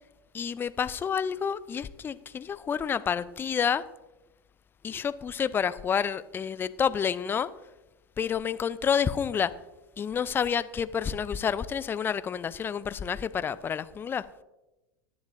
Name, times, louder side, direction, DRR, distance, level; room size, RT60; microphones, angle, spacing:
voice 1, 0.3-3.8 4.8-7.5 8.2-9.5 10.0-14.2, left 7 dB, 20° left, 16 dB, 0.5 m, -29 dB
18.0 x 10.0 x 2.6 m, 1.0 s
figure-of-eight pair, 85°, 11 cm